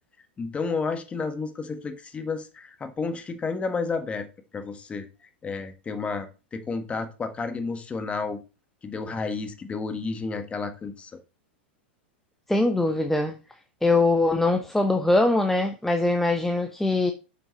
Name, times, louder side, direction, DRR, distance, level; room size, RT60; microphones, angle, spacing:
voice 1, 0.4-4.3 4.5-5.1 5.4-8.4 8.8-11.1, left 4 dB, 20° left, 1.4 m, -31 dB
voice 2, 12.5-13.4 13.8-17.1, left 2 dB, 5° left, 0.7 m, -22 dB
7.2 x 5.7 x 4.0 m
hypercardioid pair, 105°, 6 cm